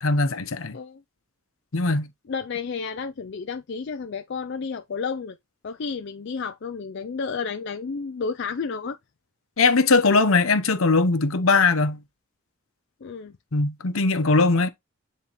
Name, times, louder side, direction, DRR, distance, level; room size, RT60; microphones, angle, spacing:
voice 1, 0.0-0.8 1.7-2.1 9.6-12.0 13.5-14.7, left 3 dB, 70° left, 0.9 m, -20 dB
voice 2, 2.3-5.4 5.6-9.0 13.0-13.4, left 5 dB, 50° left, 0.4 m, -31 dB
9.9 x 3.6 x 3.1 m
head